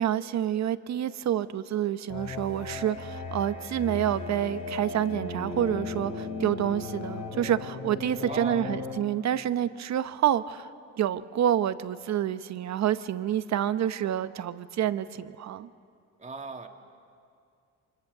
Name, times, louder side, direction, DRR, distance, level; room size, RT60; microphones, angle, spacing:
voice 1, 0.0-10.7 11.0-15.7, right 10 dB, 65° right, 13 dB, 0.9 m, -28 dB
sound 1, 2.1-9.0, left 3 dB, 85° left, 3.5 m, -36 dB
voice 2, 8.3-8.6 16.2-16.7, right 3 dB, 25° right, 4 dB, 2.0 m, -37 dB
27.0 x 25.0 x 6.7 m, 2.3 s
cardioid pair, 90°, 30 cm